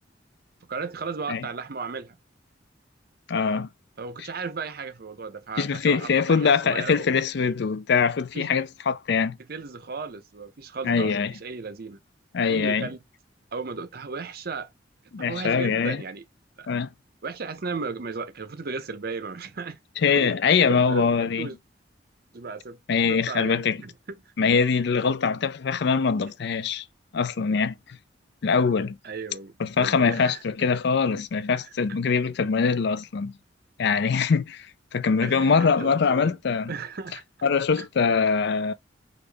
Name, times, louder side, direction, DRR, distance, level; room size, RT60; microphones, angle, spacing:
voice 1, 0.7-2.1 4.0-7.1 8.3-8.6 9.5-12.0 12.5-13.0 13.5-14.7 15.2-16.2 16.6-16.7 17.2-19.8 20.2-21.6 22.3-22.8 23.1-24.2 29.0-30.4 31.6-32.0 35.2-36.4 36.7-37.2 37.8-37.9, right 4 dB, 55° right, 0.7 m, -35 dB
voice 2, 3.3-3.7 5.6-9.4 10.8-11.3 12.3-12.9 15.1-16.0 16.7-16.9 20.0-21.5 22.9-23.8 24.4-26.8 27.1-27.7 28.4-29.0 29.6-33.3 33.8-34.7 34.9-36.7 37.4-38.7, left 5 dB, 60° left, 0.4 m, -23 dB
5.2 x 2.4 x 3.3 m
head